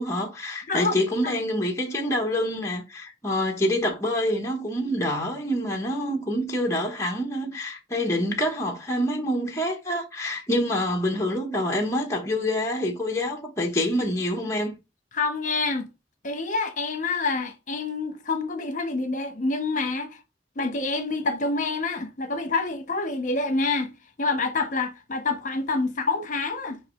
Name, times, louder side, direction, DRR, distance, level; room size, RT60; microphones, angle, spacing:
voice 1, 0.0-14.8, left 1 dB, 15° left, 1.1 m, -26 dB
voice 2, 15.1-15.9 16.2-20.2 20.6-23.9 24.2-26.8, left 3 dB, 45° left, 1.2 m, -27 dB
5.6 x 5.4 x 3.1 m
head